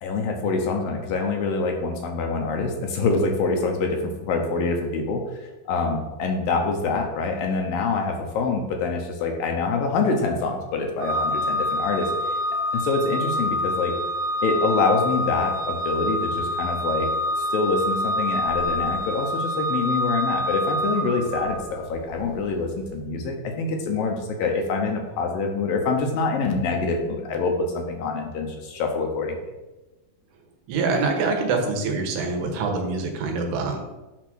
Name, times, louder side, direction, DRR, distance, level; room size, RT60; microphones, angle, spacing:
voice 1, 0.0-5.2 5.7-12.3 12.7-14.0 14.4-17.1 17.5-29.4, left 4 dB, 70° left, 3 dB, 2.4 m, -25 dB
Organ, 11.0-21.8, left 1 dB, 60° right, 1.6 m, -26 dB
voice 2, 30.7-33.8, right 4 dB, 90° right, 2 dB, 3.3 m, -25 dB
10.5 x 3.7 x 6.2 m, 1.1 s
omnidirectional pair, 4.6 m